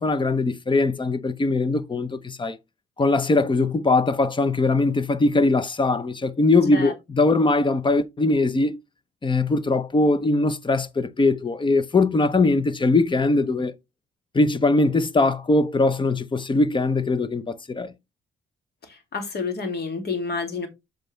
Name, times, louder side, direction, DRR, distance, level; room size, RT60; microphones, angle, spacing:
voice 1, 0.0-2.6 3.0-8.8 9.2-13.7 14.3-17.9, left 3 dB, 25° left, 0.8 m, -21 dB
voice 2, 18.8-20.7, left 4 dB, 55° left, 2.6 m, -29 dB
7.7 x 5.1 x 3.3 m
cardioid pair, 90°, 20 cm